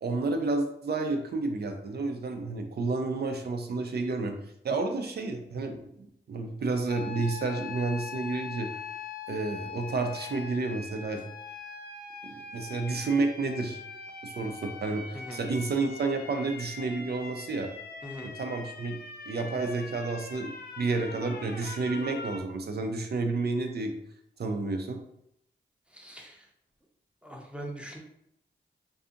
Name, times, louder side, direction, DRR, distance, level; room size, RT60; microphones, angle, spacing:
voice 1, 0.0-4.4 4.6-8.8 9.3-11.3 12.2-13.8 14.2-17.7 18.2-19.0 19.3-23.9 24.4-25.0, right 3 dB, 55° right, 4 dB, 0.5 m, -30 dB
sound 1, 6.9-22.4, left 5 dB, 55° left, 0.5 m, -42 dB
voice 2, 15.1-15.4 18.0-18.3 25.9-26.5 27.2-28.0, right 1 dB, 5° right, 0 dB, 0.7 m, -42 dB
2.7 x 2.5 x 2.4 m, 0.74 s
cardioid pair, 45°, 19 cm